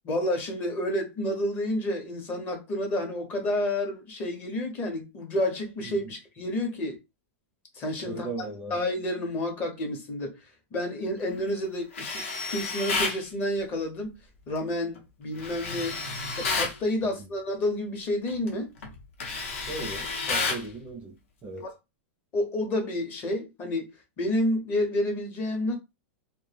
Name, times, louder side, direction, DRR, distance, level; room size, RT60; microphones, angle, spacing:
voice 1, 0.0-7.0 7.7-8.3 8.7-10.3 10.7-14.2 14.5-18.7 21.6-21.7 22.3-23.9 24.2-25.8, left 1 dB, 25° left, 0.7 m, -30 dB
voice 2, 8.0-8.7 17.0-17.3 19.7-21.2 21.4-21.7, right 3 dB, 15° right, 0.5 m, -38 dB
Tools, 11.9-13.2 15.4-16.8 18.3-18.5 18.8-20.7, left 4 dB, 75° left, 0.8 m, -30 dB
2.1 x 2.1 x 3.2 m
supercardioid pair, 160°, 7 cm